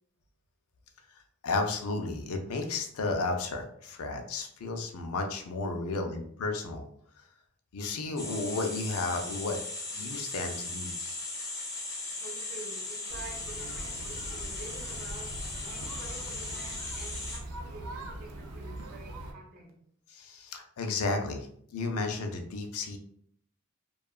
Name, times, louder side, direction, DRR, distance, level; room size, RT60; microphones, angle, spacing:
voice 1, 1.4-6.8 7.7-9.6 9.9-11.2 20.1-23.0, left 3 dB, 75° left, 4 dB, 0.4 m, -33 dB
sound 1, 8.2-17.4, left 2 dB, 15° left, 0.5 m, -38 dB
voice 2, 12.2-19.7, right 2 dB, 45° right, 0 dB, 0.6 m, -48 dB
sound 2, 13.1-19.3, right 1 dB, 85° right, 0.4 m, -41 dB
2.7 x 2.3 x 2.3 m, 0.64 s
head